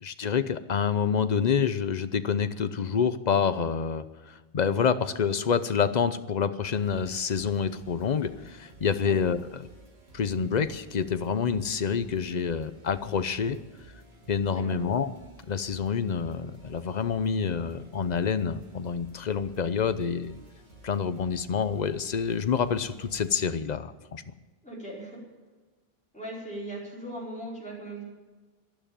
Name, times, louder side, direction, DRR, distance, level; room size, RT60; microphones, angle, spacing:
voice 1, 0.0-9.6 10.1-13.6 14.3-15.1 15.5-20.3 20.8-24.3, left 6 dB, 45° left, 12 dB, 0.8 m, -27 dB
sound 1, 6.7-23.5, right 2 dB, 90° right, 2.8 m, -53 dB
voice 2, 24.6-25.2 26.1-28.0, right 1 dB, 5° left, -7 dB, 4.9 m, -39 dB
12.0 x 11.5 x 9.0 m, 1.3 s
omnidirectional pair, 1.0 m